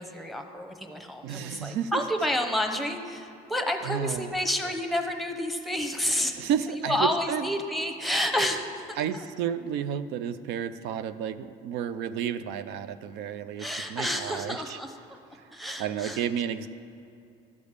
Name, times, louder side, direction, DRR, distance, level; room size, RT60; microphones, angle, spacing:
voice 1, 0.0-9.0 13.6-14.9 15.5-16.2, equal, ahead, 4 dB, 0.9 m, -30 dB
voice 2, 1.2-2.0 3.8-4.3 6.4-7.5 9.0-14.8 15.8-16.7, right 8 dB, 90° right, 12 dB, 0.4 m, -31 dB
12.5 x 5.2 x 6.5 m, 2.7 s
cardioid pair, 110°, 17 cm